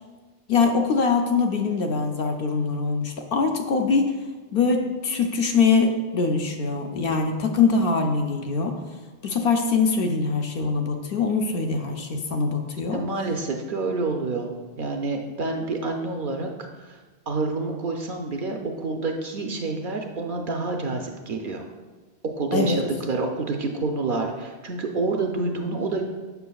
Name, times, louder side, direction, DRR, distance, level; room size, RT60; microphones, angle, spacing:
voice 1, 0.5-4.2 4.5-8.8 9.2-13.0 22.5-22.8, left 4 dB, 60° left, 4 dB, 0.7 m, -23 dB
voice 2, 12.9-16.5 16.8-17.0 17.3-21.7 22.3-22.8 23.1-26.0, right 3 dB, 60° right, 3 dB, 0.6 m, -28 dB
6.9 x 6.2 x 2.3 m, 1.3 s
omnidirectional pair, 1.2 m